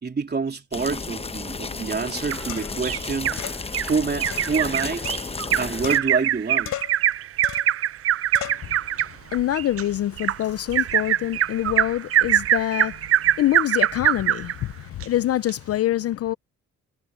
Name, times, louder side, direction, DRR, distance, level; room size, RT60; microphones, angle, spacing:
voice 1, 0.0-3.4 3.8-5.1 5.6-6.8, right 5 dB, 35° right, 3.4 m, -27 dB
sound 1, 0.7-6.0, left 4 dB, 20° left, 0.9 m, -33 dB
sound 2, 1.8-1.9 2.5-2.9 3.4-3.6 4.3-5.5 5.8-6.4 6.7-7.1 7.4-7.8 8.3-8.7, left 13 dB, 80° left, 5.9 m, -36 dB
Bird vocalization bird call bird song, 2.3-3.4 3.7-3.9 4.2-14.5 15.0-15.1 15.5-15.6, right 12 dB, 50° right, 0.5 m, -23 dB
voice 2, 8.6-16.3, left 13 dB, 55° left, 0.5 m, -26 dB
cardioid pair, 90°, 30 cm